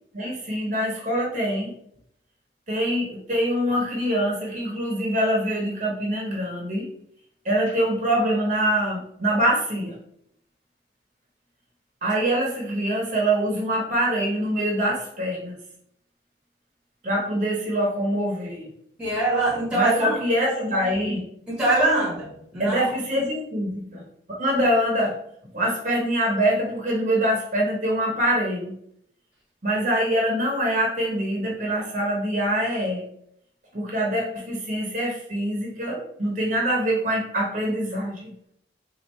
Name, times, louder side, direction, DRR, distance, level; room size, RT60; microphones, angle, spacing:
voice 1, 0.1-1.7 2.7-6.8 7.4-9.9 12.0-15.5 17.0-18.7 19.7-21.2 22.6-24.0 24.4-25.1 25.5-28.7 29.6-33.0 33.7-38.3, right 1 dB, 45° right, -2 dB, 0.9 m, -24 dB
voice 2, 19.0-20.2 21.5-22.9, right 1 dB, 5° right, -5 dB, 1.0 m, -23 dB
4.3 x 2.6 x 3.0 m, 0.72 s
head